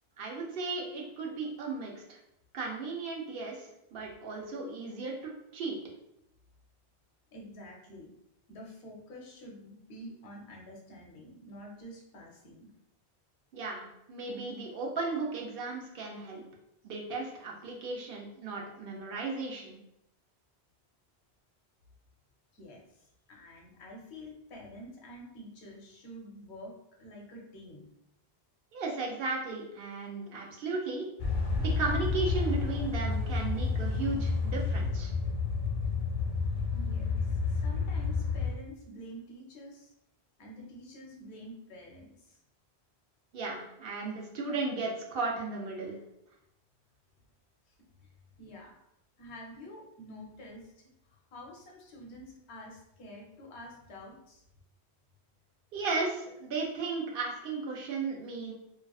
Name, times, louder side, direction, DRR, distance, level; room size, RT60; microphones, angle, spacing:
voice 1, 0.2-2.2 2.5-5.8 13.5-16.4 16.8-19.8 28.7-31.1 31.6-35.1 43.3-46.0 55.7-58.5, right 3 dB, 65° right, -1 dB, 0.7 m, -35 dB
voice 2, 7.3-8.1 8.5-12.7 22.5-27.9 36.7-39.9 40.4-42.4 47.7-48.1 48.4-48.8 49.2-54.4, equal, 85° left, -1 dB, 0.9 m, -48 dB
sound 1, 31.2-38.5, left 4 dB, 55° left, 0.6 m, -30 dB
2.3 x 2.3 x 2.3 m, 0.81 s
omnidirectional pair, 1.1 m